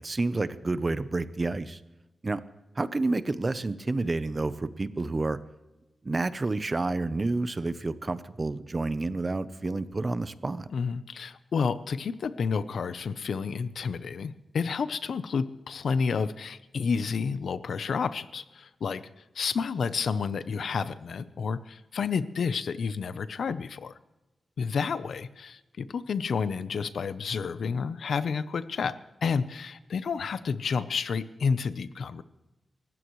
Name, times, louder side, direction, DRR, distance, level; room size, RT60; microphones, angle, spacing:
voice 1, 0.0-1.8 2.2-2.4 2.8-5.4 6.0-10.7, right 3 dB, 30° right, 14 dB, 0.7 m, -29 dB
voice 2, 10.7-19.0 19.3-23.9 24.6-32.2, left 5 dB, 80° left, 14 dB, 0.7 m, -30 dB
28.5 x 15.0 x 3.2 m, 1.1 s
wide cardioid pair, 135°, 0 cm